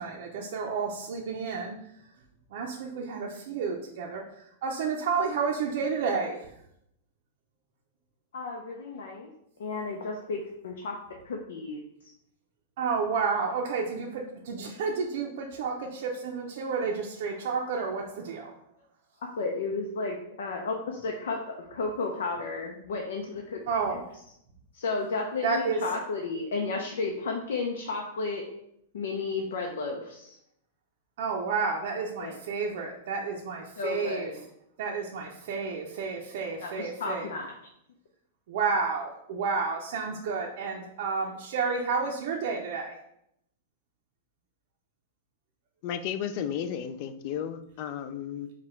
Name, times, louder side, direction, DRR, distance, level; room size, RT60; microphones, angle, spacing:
voice 1, 0.0-1.7 2.5-4.2 4.6-6.4 12.8-18.5 23.7-24.0 25.4-25.8 31.2-34.3 34.8-37.3 38.5-42.9, right 5 dB, 55° right, -1 dB, 0.5 m, -31 dB
voice 2, 8.3-9.3 9.6-11.8 19.2-23.6 24.7-28.4 28.9-30.4 32.2-32.4 33.8-34.4 36.6-37.5, left 3 dB, 85° left, 0 dB, 0.6 m, -33 dB
voice 3, 45.8-48.5, left 9 dB, 40° left, 11 dB, 0.3 m, -33 dB
4.8 x 2.3 x 4.3 m, 0.76 s
supercardioid pair, 170°, 0 cm